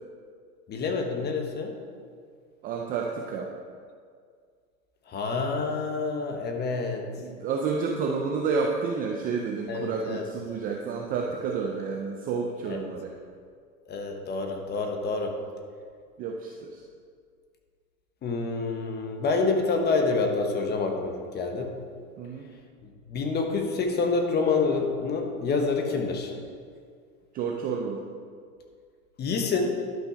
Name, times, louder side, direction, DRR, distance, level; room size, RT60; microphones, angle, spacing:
voice 1, 0.7-1.7 5.1-7.1 9.7-10.2 12.7-12.8 13.9-15.3 18.2-21.7 23.1-26.3 29.2-29.8, left 4 dB, 20° left, 4 dB, 1.1 m, -27 dB
voice 2, 2.6-3.5 7.2-13.1 16.2-16.8 22.2-22.5 27.3-28.1, right 5 dB, 20° right, 1 dB, 0.4 m, -30 dB
11.5 x 6.0 x 5.0 m, 2.1 s
hypercardioid pair, 130°, 45 cm